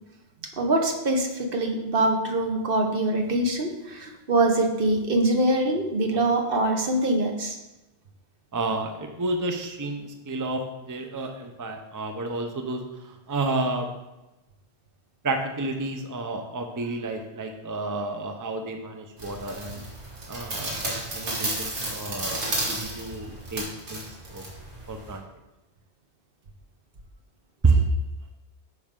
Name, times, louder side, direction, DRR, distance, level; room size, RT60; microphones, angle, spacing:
voice 1, 0.6-7.6, right 2 dB, 60° right, 3 dB, 1.1 m, -24 dB
voice 2, 8.5-12.8 13.3-13.9 15.2-19.8 20.3-24.0 24.3-24.4 24.9-25.2 27.6-27.8, right 3 dB, 20° right, 4 dB, 0.6 m, -30 dB
sound 1, 19.2-25.2, right 2 dB, 85° right, 2.2 m, -33 dB
9.4 x 5.3 x 3.7 m, 1.0 s
omnidirectional pair, 1.1 m